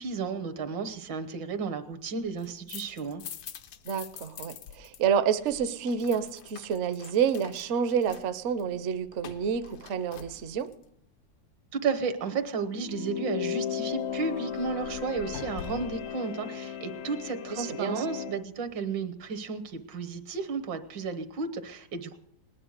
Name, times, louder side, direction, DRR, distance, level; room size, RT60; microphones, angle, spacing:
voice 1, 0.0-3.2 11.7-22.2, right 5 dB, 80° right, 8 dB, 1.8 m, -33 dB
sound 1, 2.2-5.0 5.3-10.8 13.9-16.1, left 8 dB, 85° left, 1.6 m, -46 dB
voice 2, 3.9-10.7 17.5-18.0, right 7 dB, 60° right, 12 dB, 0.8 m, -29 dB
sound 2, 12.7-18.4, left 9 dB, 60° left, 0.7 m, -35 dB
19.5 x 9.9 x 6.5 m, 0.74 s
omnidirectional pair, 2.0 m